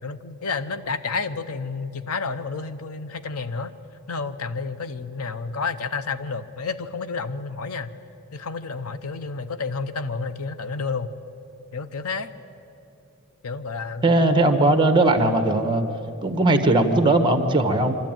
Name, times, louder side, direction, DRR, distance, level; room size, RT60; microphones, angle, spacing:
voice 1, 0.0-3.7 4.1-7.9 8.3-11.1 11.7-12.3 13.4-14.4 15.2-15.3, left 4 dB, 90° left, 12 dB, 0.9 m, -30 dB
voice 2, 14.0-15.8 16.2-18.0, right 2 dB, 20° right, 7 dB, 1.3 m, -19 dB
25.0 x 13.0 x 9.0 m, 2.8 s
head